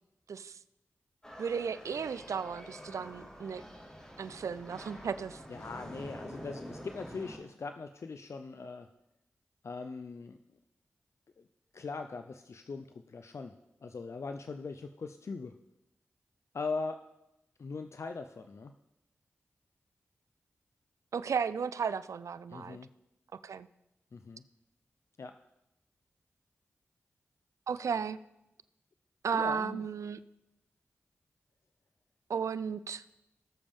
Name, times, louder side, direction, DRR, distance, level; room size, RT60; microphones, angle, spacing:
voice 1, 0.3-0.6 1.4-3.6 4.2-5.4 21.1-22.8 23.3-23.7 27.7-28.2 29.2-30.2 32.3-33.0, right 6 dB, 80° right, 15 dB, 0.4 m, -34 dB
sound 1, 1.2-7.4, equal, 15° left, 4.2 m, -47 dB
voice 2, 5.5-8.9 9.6-10.4 11.4-11.5 11.7-13.5 13.8-15.6 16.5-17.0 17.6-18.7 22.5-22.9 24.1-24.4 25.2-25.4 29.3-29.8, left 4 dB, 65° left, 7 dB, 0.6 m, -40 dB
19.0 x 6.9 x 3.6 m, 0.88 s
cardioid pair, 45°, 5 cm